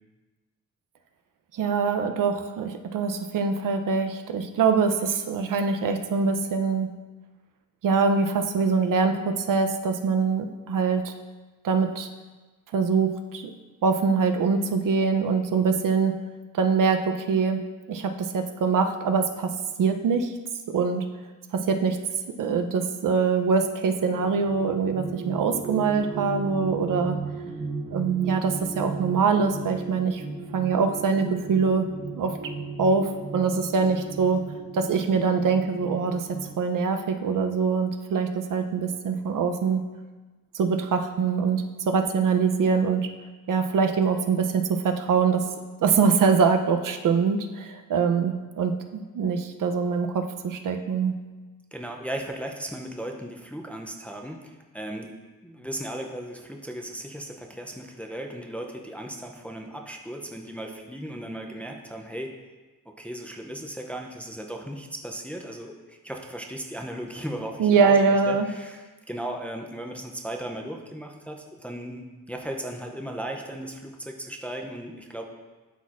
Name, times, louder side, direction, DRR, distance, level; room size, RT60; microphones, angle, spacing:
voice 1, 1.5-6.9 7.8-11.1 11.6-12.1 12.7-13.5 13.8-16.1 16.5-17.6 17.9-19.5 19.8-20.3 20.7-21.1 21.5-22.0 22.4-27.2 27.9-30.2 30.5-31.9 32.2-32.5 32.8-34.4 34.7-39.8 40.5-43.1 43.5-45.5 45.8-51.2 67.6-68.5, right 5 dB, 65° right, 6 dB, 0.6 m, -24 dB
sound 1, 23.7-36.5, right 3 dB, 40° right, 1.2 m, -36 dB
voice 2, 51.7-55.1 55.4-62.4 63.0-75.2, right 1 dB, 5° left, 2 dB, 0.4 m, -36 dB
12.0 x 4.2 x 2.4 m, 1.2 s
wide cardioid pair, 145°, 34 cm